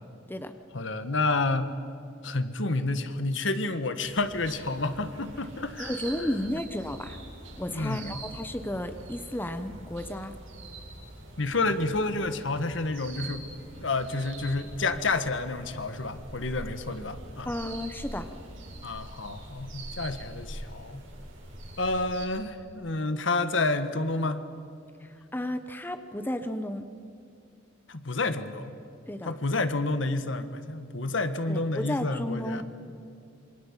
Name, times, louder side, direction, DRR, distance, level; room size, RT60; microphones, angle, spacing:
voice 1, 0.7-1.8 2.2-5.9 7.7-8.2 11.4-13.5 13.8-17.5 18.8-21.0 21.8-24.4 27.9-28.8 29.2-32.6, left 2 dB, 65° left, 10 dB, 1.5 m, -29 dB
sound 1, 4.0-22.3, right 2 dB, 70° right, 7.7 m, -44 dB
voice 2, 5.8-7.2 7.6-10.3 17.5-18.3 25.0-26.9 29.1-29.3 31.5-32.6, left 1 dB, 10° left, 8 dB, 1.0 m, -33 dB
27.0 x 24.5 x 7.5 m, 2.5 s
head